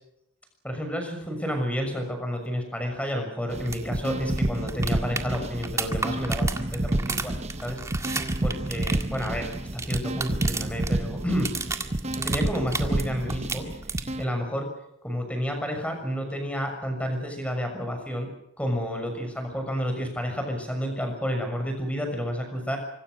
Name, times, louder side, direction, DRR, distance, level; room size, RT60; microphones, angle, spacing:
voice 1, 0.6-7.4 7.6-7.8 8.4-9.5 9.7-11.5 12.2-13.7 14.2-14.7 15.0-18.3 18.6-22.8, equal, 5° left, 4 dB, 6.4 m, -30 dB
sound 1, 3.5-14.2, right 1 dB, 30° right, 1.0 m, -29 dB
sound 2, 3.7-3.8 4.1-4.2 4.4-10.9 11.2-13.0 13.3-14.3 16.3-16.4, right 4 dB, 15° right, 1.9 m, -32 dB
26.0 x 25.5 x 6.5 m, 0.81 s
head